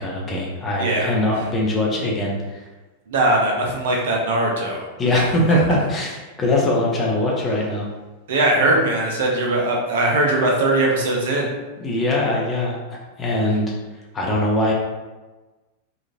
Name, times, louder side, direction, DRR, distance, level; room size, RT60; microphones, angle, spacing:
voice 1, 0.0-2.3 5.0-7.9 8.7-8.8 11.8-12.8 13.2-13.7 14.1-14.7, left 1 dB, 20° left, -3 dB, 0.6 m, -21 dB
voice 2, 0.8-1.1 3.1-4.9 5.1-5.2 5.5-5.6 8.3-11.5, right 2 dB, 55° right, 0 dB, 0.5 m, -20 dB
3.0 x 2.4 x 2.5 m, 1.2 s
figure-of-eight pair, 90°, 0 cm